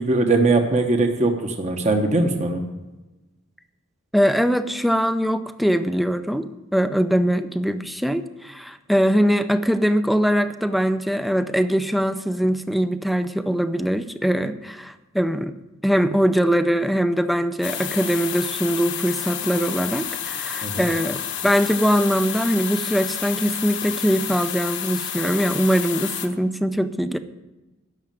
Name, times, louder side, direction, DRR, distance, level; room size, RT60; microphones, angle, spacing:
voice 1, 0.0-2.6 20.6-20.8, right 2 dB, 35° right, 4 dB, 1.1 m, -20 dB
voice 2, 4.1-15.5 15.8-27.2, equal, ahead, 10 dB, 0.5 m, -22 dB
sound 1, 17.6-26.3, left 10 dB, 60° left, 1.2 m, -30 dB
13.0 x 6.4 x 9.1 m, 1.1 s
head